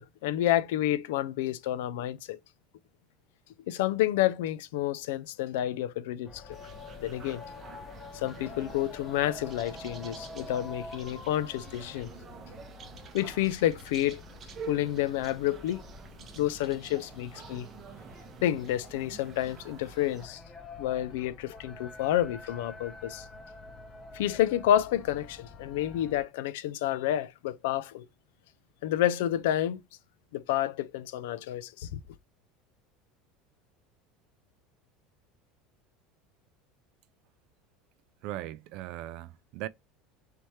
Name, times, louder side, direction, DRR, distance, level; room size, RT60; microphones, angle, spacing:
voice 1, 0.0-2.4 3.7-6.4 7.0-7.4 8.1-12.1 13.1-14.2 14.7-15.8 16.4-17.7 18.4-20.4 20.8-23.3 24.1-28.1 28.8-29.8 30.3-32.0, left 12 dB, 85° left, 0.4 m, -29 dB
sound 1, 6.2-26.2, left 3 dB, 25° left, 0.8 m, -47 dB
sound 2, 6.5-20.3, right 6 dB, 25° right, 0.7 m, -49 dB
voice 2, 38.2-39.7, right 15 dB, 55° right, 0.3 m, -38 dB
3.3 x 3.1 x 4.2 m
cardioid pair, 160°, 0 cm